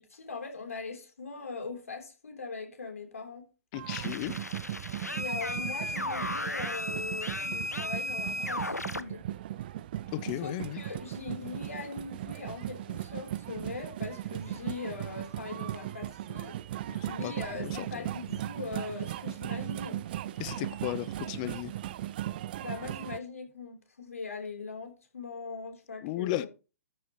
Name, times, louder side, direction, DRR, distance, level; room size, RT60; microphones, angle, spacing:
voice 1, 0.0-3.4 5.1-9.2 10.4-16.6 17.1-20.0 22.6-26.5, left 4 dB, 65° left, 3.6 m, -41 dB
voice 2, 3.7-4.3 10.1-10.8 16.9-17.3 17.6-18.1 20.4-21.7 26.0-26.5, left 15 dB, 30° left, 0.6 m, -35 dB
sound 1, 3.7-23.2, right 13 dB, 35° right, 0.4 m, -38 dB
sound 2, 3.9-9.0, left 1 dB, 85° left, 0.7 m, -35 dB
13.5 x 8.6 x 3.1 m
figure-of-eight pair, 120°, 8 cm